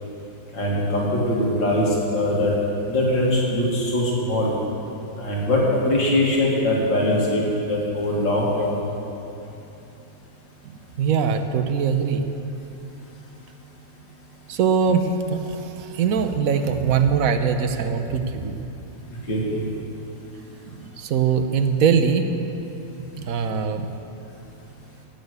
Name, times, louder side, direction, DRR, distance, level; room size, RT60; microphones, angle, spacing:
voice 1, 0.5-2.5 2.8-4.5 5.2-8.7 19.3-19.6, left 1 dB, 90° left, -4 dB, 3.0 m, -22 dB
voice 2, 11.0-12.2 14.5-18.6 20.6-22.3 23.2-23.9, right 6 dB, 60° right, 8 dB, 1.0 m, -22 dB
16.0 x 6.6 x 8.1 m, 2.9 s
omnidirectional pair, 2.0 m